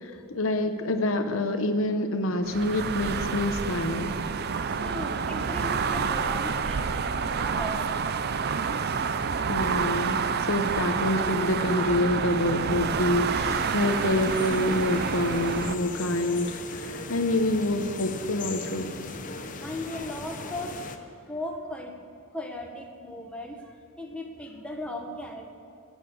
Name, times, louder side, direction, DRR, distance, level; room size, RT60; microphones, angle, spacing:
voice 1, 0.0-4.2 9.5-18.9, left 1 dB, 65° left, 7 dB, 0.9 m, -27 dB
sound 1, 2.4-15.8, right 6 dB, 45° right, 0.5 m, -28 dB
voice 2, 4.7-7.9 19.4-21.0 21.3-22.0 22.3-25.6, left 1 dB, 5° left, 1 dB, 1.3 m, -37 dB
sound 2, 13.5-21.0, left 3 dB, 35° left, 0.9 m, -38 dB
16.5 x 9.1 x 7.0 m, 2.7 s
head